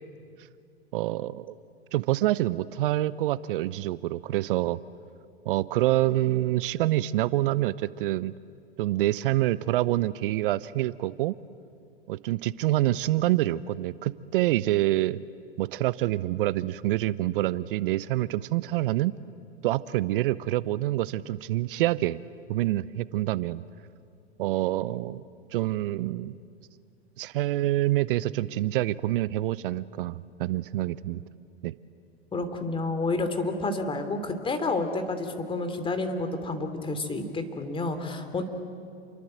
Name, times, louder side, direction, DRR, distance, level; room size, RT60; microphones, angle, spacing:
voice 1, 0.9-1.6 1.9-4.8 5.5-8.3 8.8-11.3 12.1-15.2 15.6-19.1 19.6-22.2 22.5-23.6 24.4-25.2 25.5-26.4 27.2-31.2 31.6-31.8, right 15 dB, 55° right, 18 dB, 0.7 m, -26 dB
voice 2, 32.3-38.4, left 2 dB, 15° left, 7 dB, 3.0 m, -30 dB
29.0 x 23.0 x 7.9 m, 2.3 s
hypercardioid pair, 110°, 33 cm